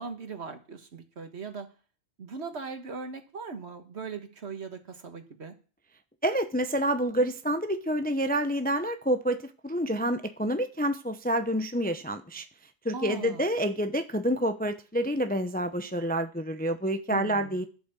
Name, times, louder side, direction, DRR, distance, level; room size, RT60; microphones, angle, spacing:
voice 1, 0.0-1.7 2.2-5.5 12.9-13.4 17.1-17.7, right 5 dB, 65° right, 7 dB, 1.8 m, -39 dB
voice 2, 6.2-12.4 12.8-17.7, right 1 dB, 10° left, 9 dB, 0.5 m, -28 dB
11.5 x 8.2 x 6.9 m, 0.38 s
omnidirectional pair, 1.2 m